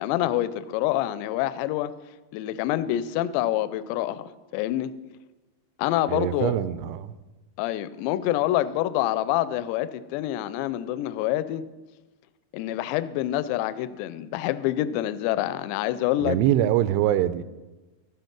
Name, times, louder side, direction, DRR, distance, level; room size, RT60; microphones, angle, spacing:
voice 1, 0.0-1.9 2.3-4.9 5.8-6.6 7.6-11.6 12.5-16.4, left 13 dB, 85° left, 2.7 m, -26 dB
voice 2, 6.1-7.2 16.2-17.4, right 12 dB, 85° right, 2.6 m, -23 dB
13.5 x 8.3 x 5.8 m
omnidirectional pair, 5.1 m